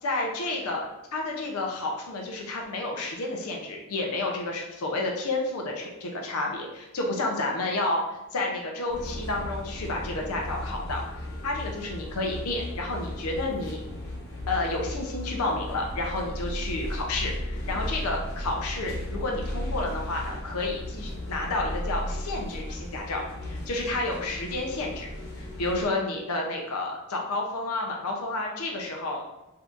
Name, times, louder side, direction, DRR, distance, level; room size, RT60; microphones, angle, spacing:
voice 1, 0.0-13.8 14.5-25.1 25.4-29.3, left 2 dB, 90° left, 0 dB, 0.6 m, -30 dB
sound 1, 8.9-25.9, left 1 dB, 50° left, 0.9 m, -35 dB
3.6 x 2.7 x 2.4 m, 0.99 s
head